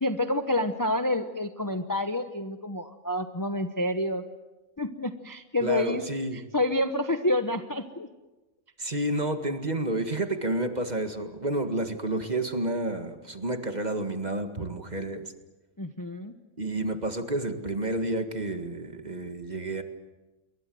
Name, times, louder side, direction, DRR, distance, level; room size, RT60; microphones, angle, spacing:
voice 1, 0.0-4.2 4.8-6.0 6.3-8.1 15.8-16.3, left 1 dB, 15° left, 8 dB, 0.9 m, -28 dB
voice 2, 5.6-6.4 8.8-15.3 16.6-19.8, right 1 dB, 30° right, 7 dB, 2.0 m, -30 dB
28.0 x 22.5 x 7.9 m, 1.1 s
omnidirectional pair, 1.5 m